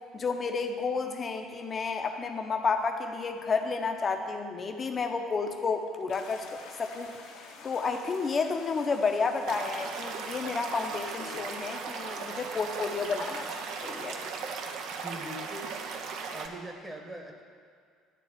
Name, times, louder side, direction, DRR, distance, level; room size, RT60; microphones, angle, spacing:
voice 1, 0.1-6.5 6.8-7.1 7.6-13.5 13.8-14.2, left 4 dB, 35° left, 5 dB, 0.9 m, -31 dB
sound 1, 6.1-14.8, left 4 dB, 65° left, 1.2 m, -49 dB
Stream / Liquid, 9.5-16.5, right 5 dB, 60° right, 0.7 m, -37 dB
voice 2, 15.0-15.7 16.3-17.4, right 1 dB, 15° right, 3 dB, 1.1 m, -41 dB
10.0 x 4.0 x 7.4 m, 2.1 s
figure-of-eight pair, 55°, 0 cm